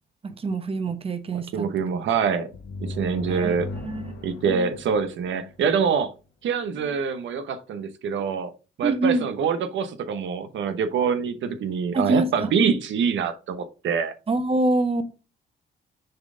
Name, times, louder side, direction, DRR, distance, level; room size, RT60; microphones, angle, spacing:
voice 1, 0.2-1.7 1.9-2.1 3.3-3.5 3.8-4.7 8.8-9.3 11.9-12.7 14.3-15.2, right 2 dB, 30° right, 0.9 m, -26 dB
voice 2, 1.3-2.5 2.8-3.7 4.2-6.1 6.4-8.5 8.8-14.1, right 6 dB, 70° right, 0.9 m, -25 dB
sound 1, 2.5-6.1, left 2 dB, 60° left, 1.2 m, -37 dB
6.7 x 4.1 x 3.7 m
cardioid pair, 90°, 20 cm